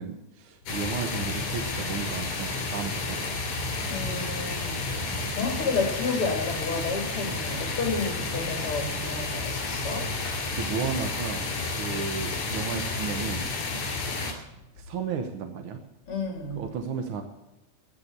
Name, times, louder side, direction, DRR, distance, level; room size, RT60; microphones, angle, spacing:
voice 1, 0.0-3.5 5.2-5.4 10.5-11.5 11.8-13.5 14.8-15.8 16.6-17.2, right 6 dB, 60° right, 6 dB, 1.4 m, -34 dB
sound 1, 0.7-14.3, left 3 dB, 70° left, 4.1 m, -31 dB
voice 2, 3.8-4.8 5.3-10.1 16.1-16.7, left 4 dB, 45° left, 2 dB, 4.2 m, -31 dB
14.5 x 9.5 x 6.7 m, 0.99 s
omnidirectional pair, 3.5 m